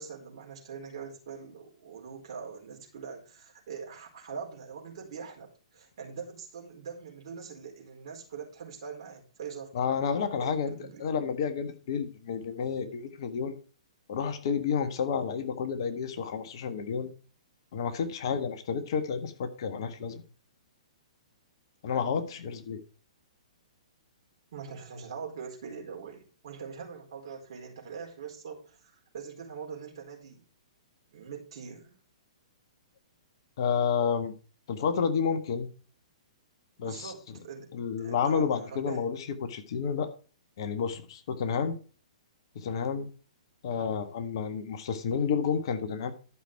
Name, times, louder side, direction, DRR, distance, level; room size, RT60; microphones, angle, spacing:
voice 1, 0.0-9.9 10.4-11.0 24.5-30.4 31.1-32.0 36.8-37.7 38.0-39.0, right 6 dB, 45° right, 1 dB, 4.2 m, -43 dB
voice 2, 9.7-10.7 11.0-13.6 14.1-17.1 17.7-20.2 21.8-22.8 33.6-34.3 34.7-35.7 36.8-37.1 37.7-40.1 40.6-41.8 42.5-43.1 43.6-46.1, left 6 dB, 45° left, 8 dB, 1.5 m, -30 dB
12.0 x 6.2 x 4.6 m, 0.37 s
figure-of-eight pair, 115°, 4 cm